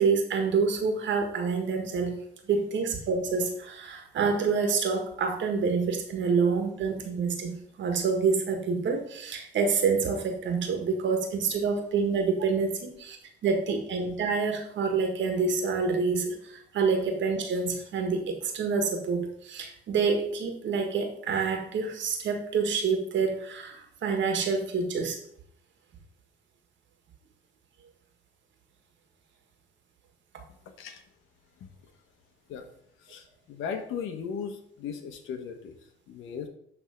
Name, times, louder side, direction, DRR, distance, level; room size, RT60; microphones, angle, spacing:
voice 1, 0.0-2.1 2.5-13.2 13.4-25.2, right 5 dB, 70° right, 5 dB, 1.7 m, -27 dB
voice 2, 33.1-35.7 36.1-36.5, left 7 dB, 85° left, 7 dB, 1.2 m, -37 dB
10.0 x 3.6 x 5.1 m, 0.69 s
cardioid pair, 90°, 20 cm